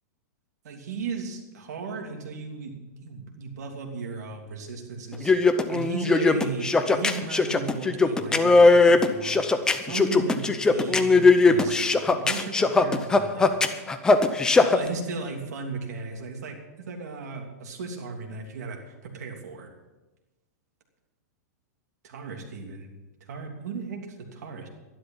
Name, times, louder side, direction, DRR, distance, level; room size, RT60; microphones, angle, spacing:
voice 1, 0.6-13.5 14.7-16.6 16.9-19.7 22.0-22.9 23.2-24.7, right 4 dB, 75° right, 2 dB, 3.0 m, -36 dB
sound 1, 5.1-14.8, left 3 dB, 10° left, 0.6 m, -19 dB
12.0 x 11.5 x 5.6 m, 1.1 s
supercardioid pair, 155°, 9 cm